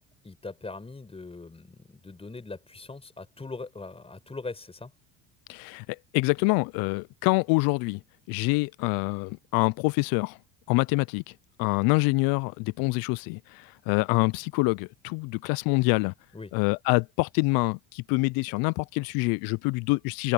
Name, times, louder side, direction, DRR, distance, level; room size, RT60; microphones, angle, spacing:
voice 1, 0.2-4.9 16.3-16.5, left 3 dB, 15° left, 5.2 m, -41 dB
voice 2, 5.5-8.0 8.3-10.4 10.7-11.3 11.6-16.1 16.5-20.3, left 28 dB, 70° left, 0.5 m, -26 dB
open air
supercardioid pair, 105°, 37 cm